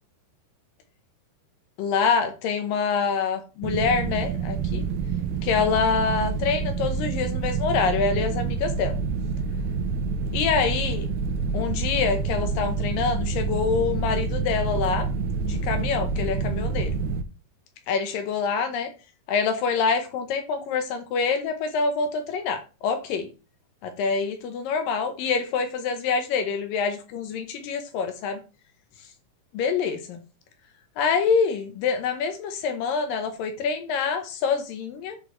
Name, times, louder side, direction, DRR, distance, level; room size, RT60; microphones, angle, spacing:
voice 1, 1.8-4.8 5.4-9.0 10.3-11.1 11.5-15.1 15.5-16.9 17.9-18.9 19.3-23.3 23.8-28.4 29.5-30.2 31.0-35.2, left 5 dB, 70° left, 2.3 m, -26 dB
sound 1, 3.6-17.2, right 5 dB, 90° right, 2.7 m, -27 dB
10.0 x 4.9 x 3.1 m
omnidirectional pair, 4.7 m